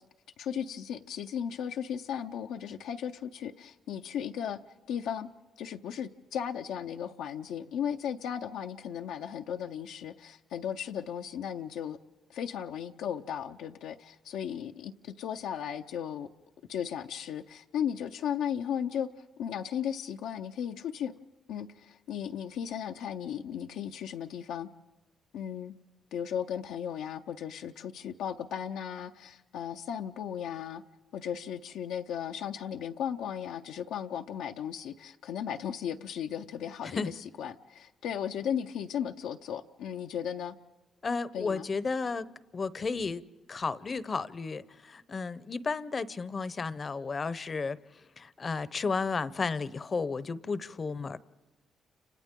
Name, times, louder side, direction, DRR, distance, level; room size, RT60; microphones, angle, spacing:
voice 1, 0.4-4.6 4.9-5.3 5.6-12.0 12.3-16.3 16.7-19.1 19.4-21.1 21.5-24.7 25.3-25.7 26.1-30.8 31.1-40.5 41.3-41.7, left 8 dB, 85° left, 4 dB, 0.6 m, -36 dB
voice 2, 41.0-42.3 42.5-43.2 43.5-47.8 48.2-51.2, left 4 dB, 35° left, 17 dB, 0.7 m, -33 dB
30.0 x 27.0 x 3.7 m, 1.2 s
cardioid pair, 90°, 0 cm